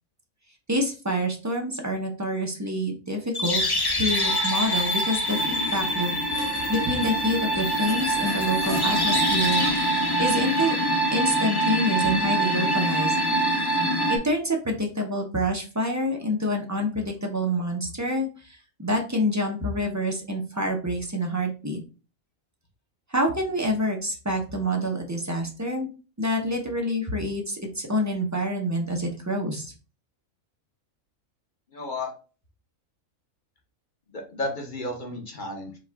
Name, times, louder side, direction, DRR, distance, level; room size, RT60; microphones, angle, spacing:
voice 1, 0.7-3.6 3.9-10.7 11.1-13.1 14.1-21.8 23.1-25.9 26.2-29.7, equal, 15° right, 1 dB, 0.6 m, -27 dB
sound 1, 3.3-14.2, right 1 dB, 20° left, 0.7 m, -24 dB
voice 2, 31.7-32.1 34.1-35.8, left 2 dB, 40° left, 1 dB, 1.1 m, -33 dB
5.4 x 2.4 x 3.5 m, 0.34 s
omnidirectional pair, 1.4 m